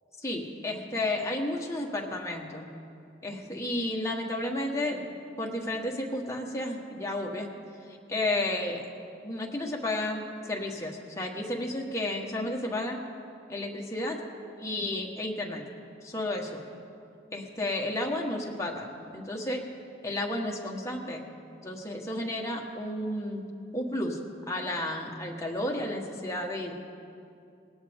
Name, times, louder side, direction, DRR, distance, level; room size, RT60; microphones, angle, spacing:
voice 1, 0.2-2.7 3.2-7.5 8.1-8.9 9.2-13.0 13.5-14.2 14.6-15.6 16.0-16.6 17.3-18.9 19.1-19.6 20.0-21.2 21.6-23.4 23.7-24.2 24.5-26.7, left 1 dB, 15° left, 0 dB, 1.3 m, -32 dB
18.5 x 17.5 x 3.6 m, 2.5 s
head